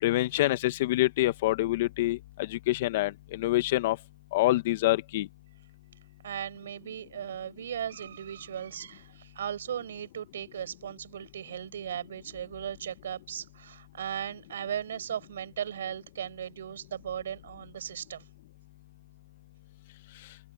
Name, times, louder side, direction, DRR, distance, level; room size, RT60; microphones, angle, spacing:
voice 1, 0.0-4.0 4.3-5.3, left 17 dB, 45° left, 1.4 m, -26 dB
voice 2, 6.2-18.3, right 9 dB, 65° right, 7.6 m, -37 dB
open air
hypercardioid pair, 155°, 0 cm